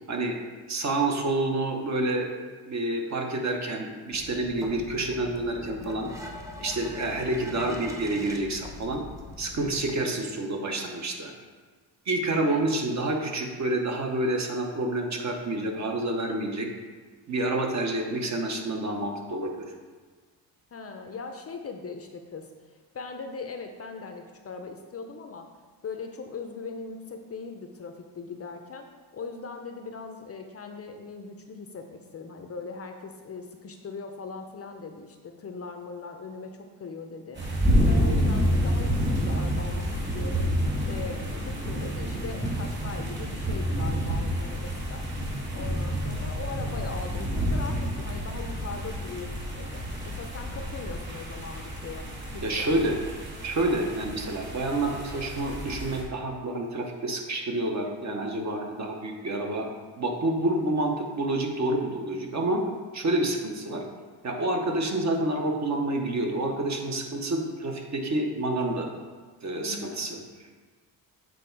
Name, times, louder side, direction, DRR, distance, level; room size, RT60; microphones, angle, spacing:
voice 1, 0.7-2.3 2.7-6.1 6.6-9.0 9.4-11.3 12.1-16.7 17.3-19.6 52.4-52.9 53.4-59.7 60.0-62.6 62.9-63.8 64.2-68.9 69.4-70.2, right 2 dB, 40° right, 2 dB, 1.0 m, -28 dB
sound 1, 4.1-9.9, left 1 dB, 10° right, 0.8 m, -42 dB
voice 2, 20.7-25.5 25.8-28.9 29.1-37.4 37.9-40.5 40.8-45.1 45.5-52.7 69.6-70.0, left 4 dB, 35° left, 5 dB, 0.6 m, -40 dB
sound 2, 37.4-56.0, equal, 25° right, 1.8 m, -29 dB
7.7 x 3.4 x 4.6 m, 1.4 s
cardioid pair, 105°, 42 cm